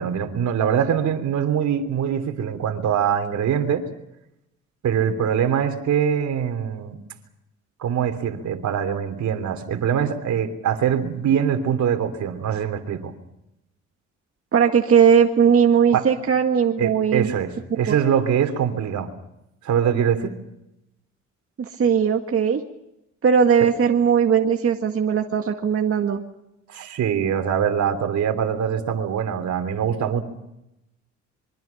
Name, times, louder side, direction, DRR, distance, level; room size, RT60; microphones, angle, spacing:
voice 1, 0.0-3.8 4.8-7.0 7.8-13.1 15.9-16.1 16.8-19.1 19.6-20.3 26.7-30.2, right 8 dB, 70° right, 9 dB, 3.2 m, -23 dB
voice 2, 14.5-17.3 17.8-18.0 21.8-22.6 23.2-26.2, right 7 dB, 50° right, 3 dB, 2.0 m, -18 dB
26.5 x 24.0 x 5.8 m, 0.86 s
cardioid pair, 90°, 30 cm